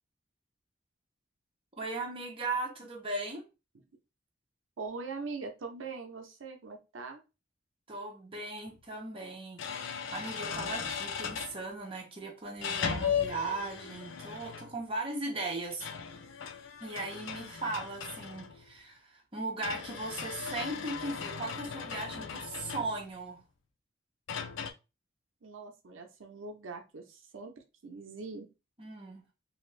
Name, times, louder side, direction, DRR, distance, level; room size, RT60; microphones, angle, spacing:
voice 1, 1.7-3.4 7.9-9.8 10.1-15.9 16.8-23.4 28.8-29.2, right 2 dB, 30° right, 0.9 m, -38 dB
voice 2, 4.8-7.2 25.4-28.5, right 4 dB, 90° right, 0.6 m, -42 dB
sound 1, 8.7-8.8 9.6-11.6 12.6-14.8 15.7-18.7 19.6-23.2 24.3-24.7, left 7 dB, 75° left, 0.5 m, -37 dB
2.7 x 2.5 x 3.2 m
head